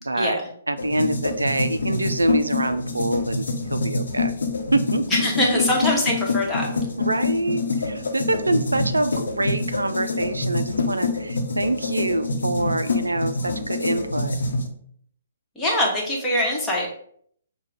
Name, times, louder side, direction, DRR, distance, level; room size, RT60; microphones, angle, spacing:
voice 1, 0.0-0.4 0.7-4.3 4.7-5.3 5.5-5.6 7.0-14.4, right 2 dB, 80° right, 10 dB, 0.3 m, -25 dB
sound 1, 0.8-14.7, left 3 dB, 65° left, 0.8 m, -26 dB
voice 2, 5.1-6.7 15.6-16.9, left 1 dB, 10° left, -3 dB, 1.1 m, -22 dB
5.8 x 2.2 x 3.4 m, 0.62 s
figure-of-eight pair, 125°, 0 cm